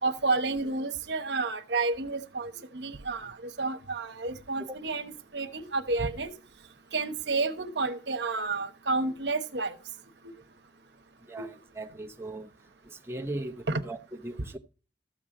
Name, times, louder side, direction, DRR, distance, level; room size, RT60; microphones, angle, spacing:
voice 1, 0.0-6.3 6.9-9.8 11.4-11.5 13.7-13.8, right 3 dB, 75° right, 1.1 m, -30 dB
voice 2, 11.3-12.5 12.8-14.0 14.2-14.6, right 2 dB, 15° right, 0.7 m, -38 dB
13.5 x 7.6 x 3.7 m
head